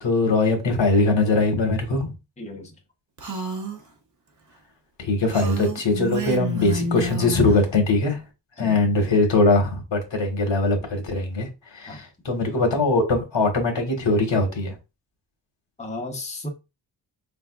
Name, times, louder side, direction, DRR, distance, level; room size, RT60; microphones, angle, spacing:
voice 1, 0.0-2.1 5.0-8.2 8.6-11.5 11.7-14.7, left 2 dB, 90° left, 1.5 m, -21 dB
voice 2, 2.4-2.7 8.6-8.8 11.9-12.1 15.8-16.5, left 2 dB, 15° left, 0.8 m, -34 dB
Female speech woman speaking, 3.2-3.8 5.3-7.6, right 1 dB, 40° right, 0.8 m, -29 dB
5.1 x 3.5 x 2.3 m
wide cardioid pair, 175°, 44 cm